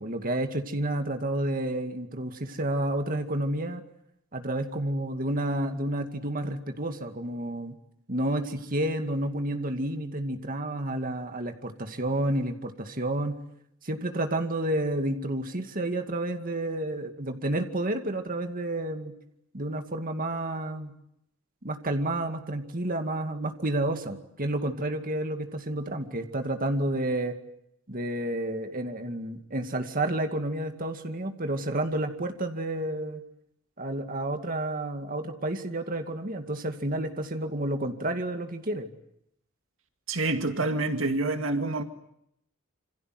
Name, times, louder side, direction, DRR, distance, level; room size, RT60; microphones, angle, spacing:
voice 1, 0.0-3.8 4.3-7.7 8.1-13.4 13.8-19.1 19.5-20.9 21.6-27.3 27.9-33.2 33.8-38.9, right 1 dB, 40° right, 2.3 m, -30 dB
voice 2, 40.1-41.8, right 2 dB, 65° right, 2.2 m, -27 dB
28.0 x 26.5 x 7.9 m
head